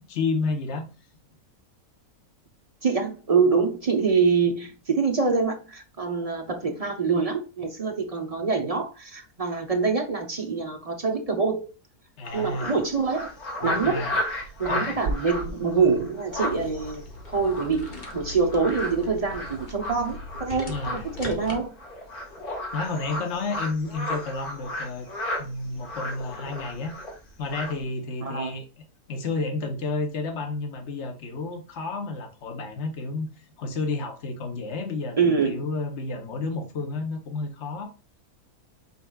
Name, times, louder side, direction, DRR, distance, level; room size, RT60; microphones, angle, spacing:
voice 1, 0.1-0.9 12.2-12.8 13.8-14.2 14.7-15.0 20.7-21.4 22.7-25.1 25.4-26.9 27.4-28.6 29.1-33.3 33.6-37.9, left 3 dB, 50° left, 1.3 m, -31 dB
voice 2, 2.8-11.7 12.3-13.3 13.6-14.0 14.6-21.7 28.2-28.6 35.2-35.7, right 5 dB, 35° right, 0.7 m, -25 dB
sound 1, 12.2-25.4 25.8-27.2 27.4-27.8, left 1 dB, 85° left, 2.1 m, -34 dB
sound 2, 13.6-16.1 17.3-17.4 17.6-17.7 17.9-18.2 18.7-19.0, right 3 dB, 60° right, 1.0 m, -37 dB
sound 3, 16.3-21.6, left 2 dB, 35° left, 1.1 m, -40 dB
5.6 x 4.0 x 2.3 m
omnidirectional pair, 1.5 m